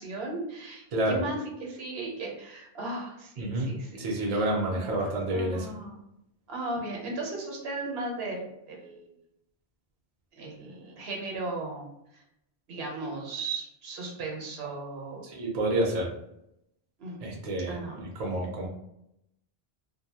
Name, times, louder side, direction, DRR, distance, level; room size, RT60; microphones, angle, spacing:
voice 1, 0.0-6.0 6.5-9.1 10.4-12.2 12.7-15.3 17.0-18.5, right 2 dB, 70° right, 0 dB, 0.9 m, -37 dB
voice 2, 3.4-3.7 4.0-5.7 15.2-16.1 17.2-18.7, right 1 dB, 45° right, -1 dB, 0.6 m, -29 dB
2.6 x 2.1 x 2.7 m, 0.81 s
omnidirectional pair, 1.1 m